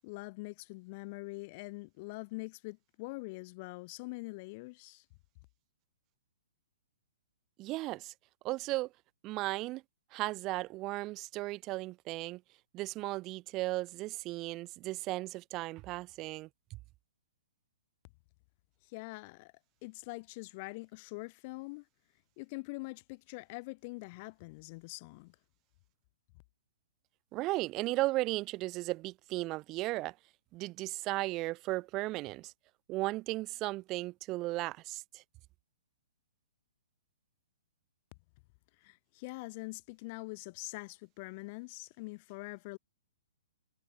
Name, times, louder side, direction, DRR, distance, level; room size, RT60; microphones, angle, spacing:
voice 1, 0.0-5.0 18.9-19.5 19.8-21.8 22.4-25.4 38.8-42.8, left 26 dB, 40° left, 0.5 m, -44 dB
voice 2, 7.6-8.1 8.4-8.9 9.2-9.8 10.1-12.4 12.7-16.5 27.3-30.1 30.5-32.5 32.9-35.2, right 19 dB, 30° right, 0.8 m, -35 dB
figure-of-eight pair, 120°, 0 cm